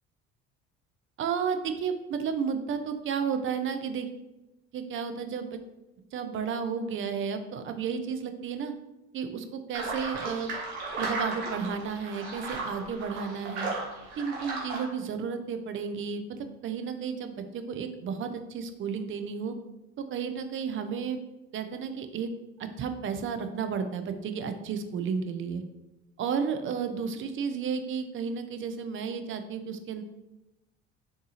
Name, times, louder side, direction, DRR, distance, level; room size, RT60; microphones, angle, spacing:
voice 1, 1.2-4.1 4.7-5.6 6.1-8.7 9.1-10.5 11.0-13.7 14.2-19.5 20.0-21.2 21.5-22.3 22.6-25.6 26.2-30.0, right 6 dB, 40° right, 8 dB, 0.4 m, -32 dB
sound 1, 9.7-14.8, right 3 dB, 85° right, 1.0 m, -35 dB
3.5 x 2.8 x 2.8 m, 0.96 s
hypercardioid pair, 65°, 33 cm